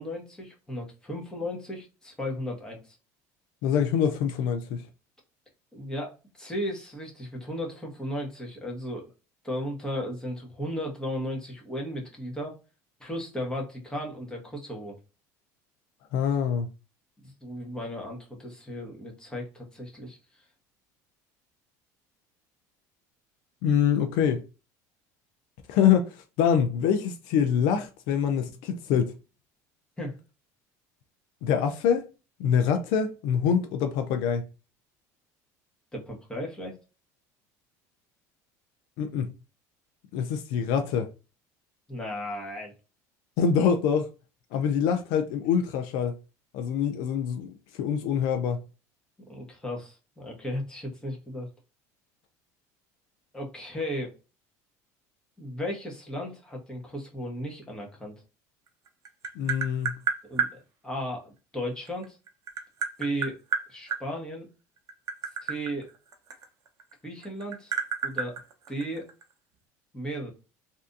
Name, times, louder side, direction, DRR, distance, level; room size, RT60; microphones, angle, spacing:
voice 1, 0.0-3.0 5.7-9.1 9.4-12.5 13.0-15.0 17.2-20.4 30.0-30.2 35.9-36.8 41.9-42.7 49.3-51.5 53.3-54.1 55.4-58.2 60.2-62.2 63.0-63.4 63.7-64.5 65.4-65.9 67.0-67.7 68.0-68.3 68.7-69.1 69.9-70.3, equal, 10° left, 1.3 m, -35 dB
voice 2, 3.6-4.8 16.1-16.7 23.6-24.4 25.7-29.2 31.4-32.1 32.4-34.4 39.0-39.3 40.1-41.1 43.4-44.1 44.5-46.2 46.5-48.6 59.4-60.0, left 7 dB, 70° left, 0.5 m, -25 dB
Tap, 58.7-60.5 61.9-64.0 64.8-66.9 67.2-69.2, right 6 dB, 40° right, 0.7 m, -30 dB
3.3 x 2.7 x 2.5 m
supercardioid pair, 115°, 8 cm